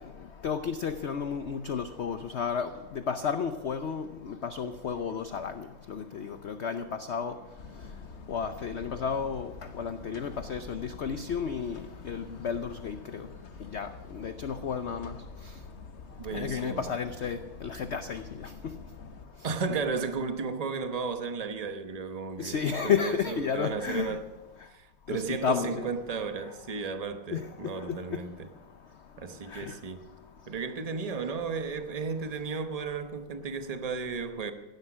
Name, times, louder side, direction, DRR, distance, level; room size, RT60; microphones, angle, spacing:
voice 1, 0.4-2.7 3.1-7.3 8.3-9.5 9.8-13.0 13.7-13.9 14.1-15.1 16.3-18.2 22.4-24.2 25.1-25.9 27.3-28.2 29.5-29.6, left 6 dB, 70° left, 0.6 m, -32 dB
sound 1, 7.6-19.2, left 4 dB, 45° left, 1.2 m, -47 dB
voice 2, 16.2-16.9 19.4-24.3 24.7-28.5 29.2-30.0 30.5-34.5, right 5 dB, 30° right, 0.8 m, -34 dB
16.5 x 12.0 x 6.1 m
omnidirectional pair, 2.0 m